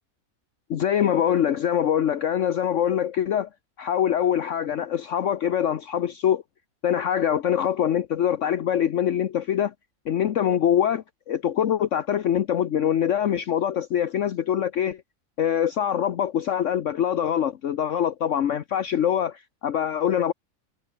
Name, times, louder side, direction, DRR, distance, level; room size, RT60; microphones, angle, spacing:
voice 1, 0.7-3.5 3.8-6.4 6.8-9.7 10.1-15.0 15.4-20.3, left 9 dB, 60° left, 1.2 m, -24 dB
omnidirectional pair, 1.5 m